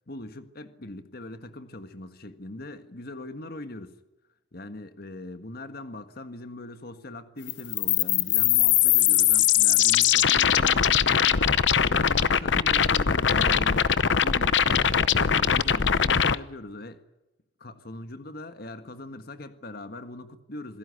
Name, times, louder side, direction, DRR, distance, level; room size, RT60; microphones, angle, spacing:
voice 1, 0.1-4.0 4.5-11.6 11.9-13.9 14.2-17.0 17.6-20.8, left 1 dB, 60° left, 1.7 m, -40 dB
sound 1, 7.5-16.4, left 8 dB, 85° left, 0.8 m, -21 dB
26.5 x 17.0 x 9.7 m
head